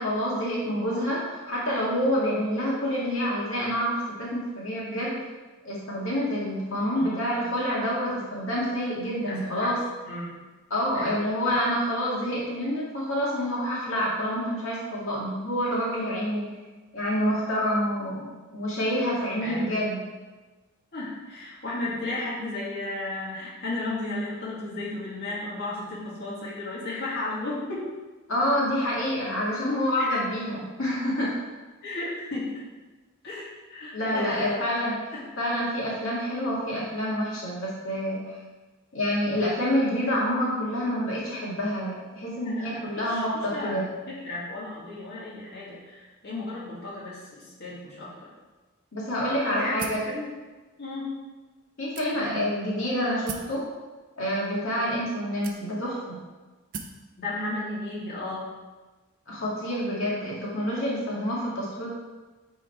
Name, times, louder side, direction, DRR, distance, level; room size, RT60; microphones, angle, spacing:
voice 1, 0.0-5.1 5.6-9.8 10.7-16.5 16.9-18.3 18.5-20.0 28.3-31.4 33.9-35.0 35.4-38.2 38.9-43.9 48.9-50.0 51.8-53.6 54.2-56.2 59.3-61.9, equal, 70° left, -6 dB, 2.0 m, -27 dB
voice 2, 6.9-7.2 9.2-9.7 10.0-10.4 10.9-11.2 16.2-16.4 19.4-19.8 20.9-27.9 30.0-30.2 31.8-32.6 33.2-34.6 35.1-35.3 42.3-48.3 49.4-50.3 50.8-51.1 52.1-52.4 57.2-58.5, left 2 dB, 55° left, -7 dB, 2.0 m, -34 dB
sound 1, 49.8-50.1 50.9-51.0 52.0-52.5 53.3-53.6 54.5-54.6 55.4-56.0 56.7-57.0, right 5 dB, 45° right, 0.6 m, -38 dB
9.1 x 3.9 x 4.4 m, 1.2 s
head